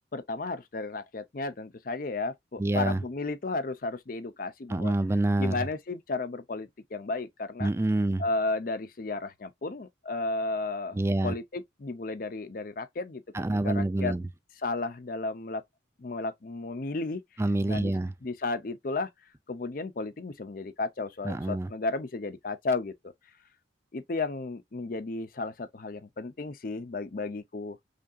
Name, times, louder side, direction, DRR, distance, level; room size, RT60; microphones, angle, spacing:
voice 1, 0.1-4.9 5.4-7.7 8.2-11.0 11.2-13.2 13.6-14.1 14.6-15.6 16.0-17.2 17.7-17.9 18.2-19.1 19.5-22.9 23.9-27.8, left 3 dB, 45° left, 0.5 m, -33 dB
voice 2, 2.6-3.0 4.7-5.6 7.6-8.2 10.9-11.3 13.3-14.2 17.4-18.1 21.2-21.7, right 2 dB, 15° right, 0.3 m, -27 dB
5.1 x 2.7 x 2.3 m
head